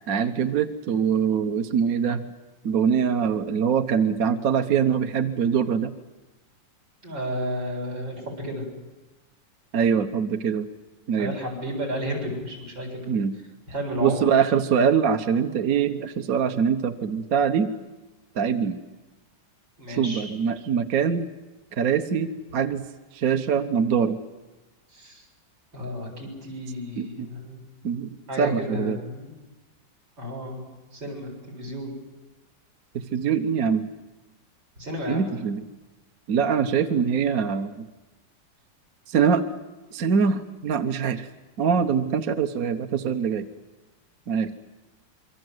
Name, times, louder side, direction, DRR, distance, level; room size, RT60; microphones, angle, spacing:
voice 1, 0.1-2.2 2.6-5.9 9.7-10.7 11.1-11.3 13.1-13.3 14.0-17.7 18.3-18.8 19.9-21.3 21.8-22.8 23.1-24.2 27.0-27.3 27.8-28.1 28.4-29.0 32.9-33.9 35.1-35.6 36.3-37.8 39.1-39.4 39.9-41.3 41.6-43.5 44.3-44.5, right 7 dB, 55° right, 8 dB, 1.3 m, -23 dB
voice 2, 7.0-8.6 11.2-13.0 13.7-14.3 19.8-20.2 24.9-25.3 25.7-27.6 28.3-29.3 30.2-30.6 30.9-32.0 34.8-35.3, equal, 80° right, 0 dB, 8.2 m, -32 dB
26.5 x 24.0 x 7.9 m, 1.1 s
omnidirectional pair, 2.0 m